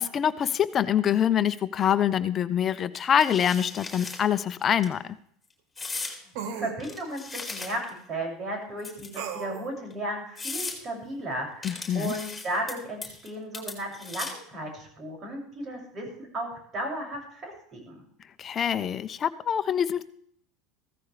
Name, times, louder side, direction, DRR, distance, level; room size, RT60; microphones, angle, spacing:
voice 1, 0.0-5.1 11.6-12.1 18.4-20.0, left 9 dB, 35° left, 12 dB, 1.0 m, -25 dB
sound 1, 2.9-4.2 4.6-4.9 5.8-6.2 6.8-8.0 8.8-9.4 9.9-10.0 10.4-10.8 11.6-12.7 13.0-13.3 13.5-14.5, left 3 dB, 10° left, 4.9 m, -37 dB
sound 2, 4.0-4.1 6.4-6.8 9.2-9.7, right 8 dB, 65° right, 1.6 m, -35 dB
voice 2, 6.4-16.1 16.3-18.0, right 1 dB, 40° right, 0 dB, 7.0 m, -35 dB
16.0 x 14.5 x 3.5 m, 0.64 s
hypercardioid pair, 85°, 0 cm